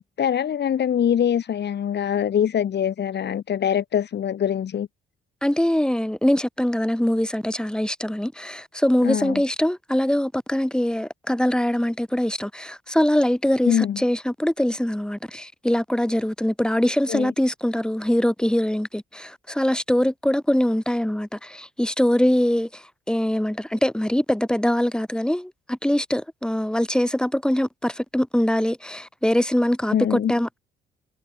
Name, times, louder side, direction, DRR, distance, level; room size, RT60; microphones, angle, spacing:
voice 1, 0.0-4.9 9.0-9.4 13.7-14.0 17.1-17.3 29.9-30.3, left 9 dB, 60° left, 3.9 m, -23 dB
voice 2, 5.4-30.6, left 1 dB, 5° left, 5.7 m, -23 dB
cardioid pair, 90°, 20 cm